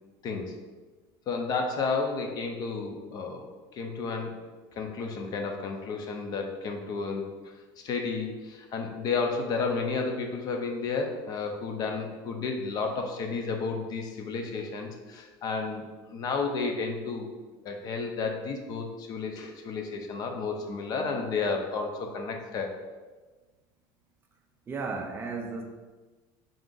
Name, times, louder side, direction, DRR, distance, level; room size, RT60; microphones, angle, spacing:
voice 1, 0.2-0.5 1.3-4.4 4.8-7.5 7.8-17.3 17.6-22.7, left 4 dB, 40° left, 3 dB, 0.5 m, -32 dB
voice 2, 24.7-25.7, right 4 dB, 20° right, 2 dB, 0.3 m, -34 dB
3.7 x 2.4 x 3.7 m, 1.3 s
cardioid pair, 145°, 10 cm